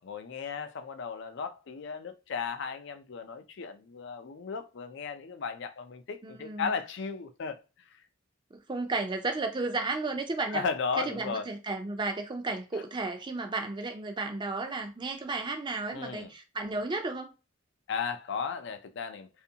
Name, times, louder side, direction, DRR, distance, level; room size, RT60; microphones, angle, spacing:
voice 1, 0.0-7.6 10.5-11.5 15.9-16.3 17.9-19.3, left 5 dB, 60° left, 0.4 m, -35 dB
voice 2, 6.2-6.7 8.5-10.7 11.0-17.3, right 3 dB, 25° right, 0.4 m, -33 dB
2.6 x 2.4 x 2.7 m
head